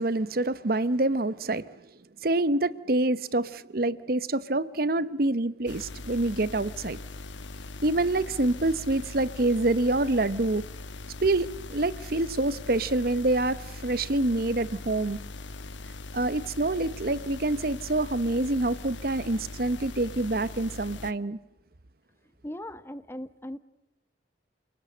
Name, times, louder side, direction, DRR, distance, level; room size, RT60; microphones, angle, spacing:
voice 1, 0.0-1.7 2.2-7.0 7.8-10.6 11.2-15.2 16.1-21.4, right 2 dB, 55° right, 0.9 m, -26 dB
sound 1, 5.7-21.1, left 2 dB, 85° left, 1.2 m, -41 dB
voice 2, 22.4-23.6, left 1 dB, 15° left, 0.9 m, -38 dB
28.5 x 19.5 x 7.9 m
head